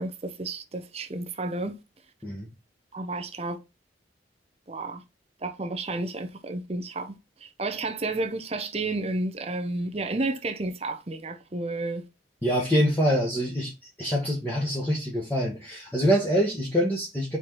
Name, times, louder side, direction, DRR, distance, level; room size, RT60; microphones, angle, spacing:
voice 1, 0.0-1.8 2.9-3.6 4.7-5.0 5.4-7.1 7.4-12.0, right 2 dB, 35° right, 0.7 m, -31 dB
voice 2, 12.4-13.7 14.0-17.4, equal, 10° left, 1.5 m, -25 dB
4.7 x 4.6 x 4.5 m
head